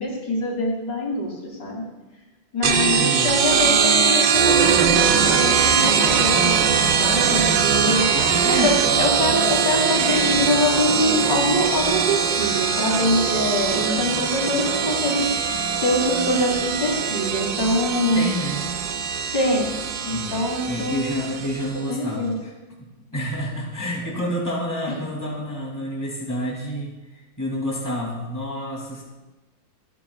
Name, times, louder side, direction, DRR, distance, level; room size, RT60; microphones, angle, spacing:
voice 1, 0.0-1.3 1.6-1.8 2.5-5.0 5.2-8.1 8.5-15.3 15.8-18.2 19.3-19.7 20.0-21.0 21.9-22.3, left 1 dB, 65° left, -2 dB, 3.8 m, -24 dB
voice 2, 2.6-3.3 8.1-8.8 18.1-18.6 20.1-22.5 22.8-26.9 27.4-29.0, equal, 10° left, -3 dB, 2.7 m, -29 dB
sound 1, 2.6-21.8, right 6 dB, 70° right, 1.6 m, -21 dB
28.5 x 9.9 x 2.4 m, 1.1 s
omnidirectional pair, 2.1 m